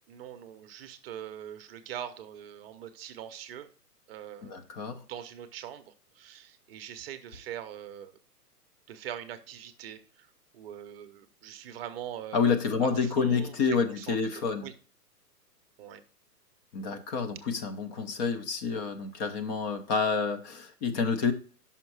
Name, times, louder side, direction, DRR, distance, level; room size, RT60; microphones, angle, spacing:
voice 1, 0.1-3.7 4.1-4.7 5.1-8.1 8.9-10.3 10.5-12.4 12.8-13.5 14.0-14.7 15.8-16.0, right 10 dB, 35° right, 9 dB, 0.8 m, -42 dB
voice 2, 4.4-5.0 12.3-14.7 16.7-21.3, left 5 dB, 25° left, 7 dB, 0.8 m, -28 dB
5.8 x 5.2 x 4.7 m, 0.40 s
hypercardioid pair, 130°, 49 cm